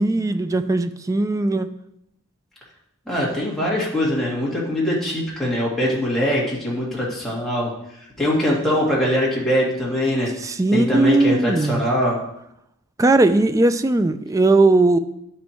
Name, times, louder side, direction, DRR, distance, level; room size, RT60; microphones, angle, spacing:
voice 1, 0.0-1.7 10.4-11.8 13.0-15.0, right 2 dB, 15° right, 10 dB, 0.3 m, -18 dB
voice 2, 3.1-7.7 8.2-10.3 10.7-12.2, equal, ahead, -7 dB, 2.0 m, -22 dB
10.5 x 4.4 x 4.5 m, 0.81 s
head